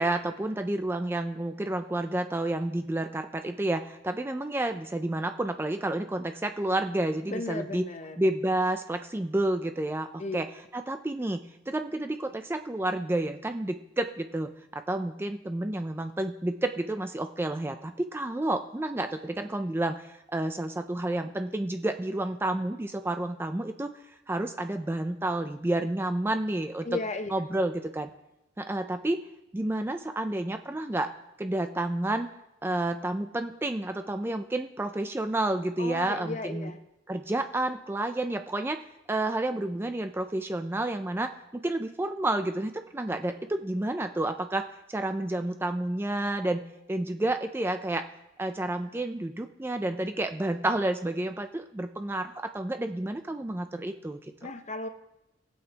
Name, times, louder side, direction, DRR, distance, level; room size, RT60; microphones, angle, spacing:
voice 1, 0.0-7.9 8.2-10.5 10.7-23.9 24.3-27.0 27.3-28.1 28.6-29.2 29.5-31.1 31.4-32.3 32.6-36.7 37.1-38.8 39.1-41.3 41.6-46.6 46.9-48.1 48.4-54.5, right 1 dB, 10° right, 7 dB, 0.4 m, -30 dB
voice 2, 7.3-8.2 10.2-10.4 26.8-27.3 35.8-36.8 54.4-54.9, left 2 dB, 35° left, 8 dB, 0.7 m, -35 dB
19.5 x 7.9 x 2.9 m, 0.93 s
head